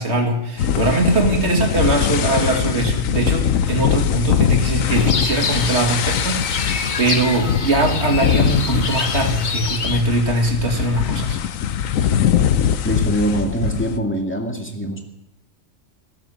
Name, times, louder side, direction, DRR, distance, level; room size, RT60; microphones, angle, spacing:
voice 1, 0.0-11.4, right 2 dB, 55° right, 3 dB, 2.5 m, -21 dB
sound 1, 0.6-14.0, left 9 dB, 85° left, 1.2 m, -21 dB
sound 2, 4.9-10.0, left 5 dB, 40° left, 1.0 m, -26 dB
voice 2, 12.8-15.0, right 1 dB, 10° left, 2 dB, 2.1 m, -23 dB
16.0 x 11.0 x 7.1 m, 0.85 s
omnidirectional pair, 1.4 m